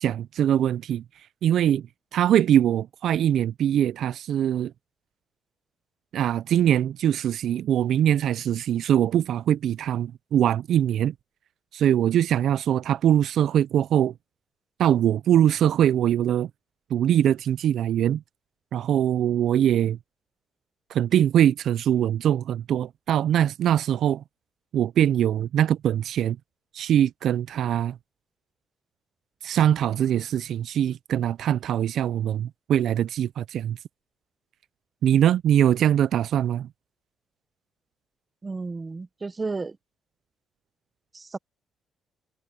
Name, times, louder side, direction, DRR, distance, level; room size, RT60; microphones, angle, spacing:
voice 1, 0.0-1.0 1.4-1.9 2.1-4.7 6.1-11.1 11.7-14.1 14.8-16.5 16.9-18.2 18.7-20.0 20.9-24.2 24.7-26.4 26.7-28.0 29.4-33.8 35.0-36.7, right 10 dB, 70° right, 0.4 m, -22 dB
voice 2, 38.4-39.8 41.1-41.4, right 3 dB, 25° right, 0.8 m, -32 dB
cardioid pair, 90°, 0 cm